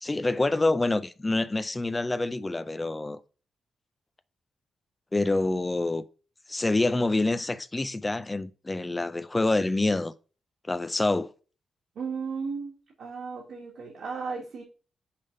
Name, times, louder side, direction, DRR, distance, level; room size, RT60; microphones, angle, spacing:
voice 1, 0.0-3.2 5.1-6.0 6.5-10.1 10.7-11.3, left 2 dB, 15° left, 0.4 m, -26 dB
voice 2, 11.9-14.6, right 5 dB, 65° right, 1.6 m, -35 dB
5.7 x 3.4 x 5.1 m
wide cardioid pair, 175°, 0 cm